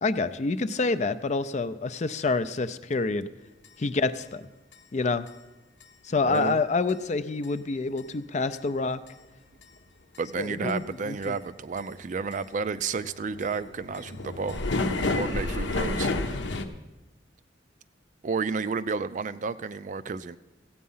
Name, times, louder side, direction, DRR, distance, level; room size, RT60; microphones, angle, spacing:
voice 1, 0.0-3.3 3.8-4.5 4.9-5.3 6.0-9.0 10.4-11.4, left 3 dB, 40° left, 13 dB, 0.4 m, -27 dB
sound 1, 3.6-3.7 4.2-4.3 4.7-4.8 5.3-5.4 5.8-5.9 6.4-6.5 6.9-7.0 7.4-7.5 8.0-8.1 8.5-8.6 9.1-9.2 9.6-9.7 10.2-10.3 10.7-10.8 11.2-11.5 11.8-11.9 12.2-16.7, left 2 dB, 70° left, 0.8 m, -30 dB
voice 2, 6.2-6.6 10.2-14.6 15.1-16.1 18.2-20.4, right 5 dB, 40° right, 14 dB, 0.4 m, -31 dB
15.5 x 8.5 x 5.5 m, 1.1 s
head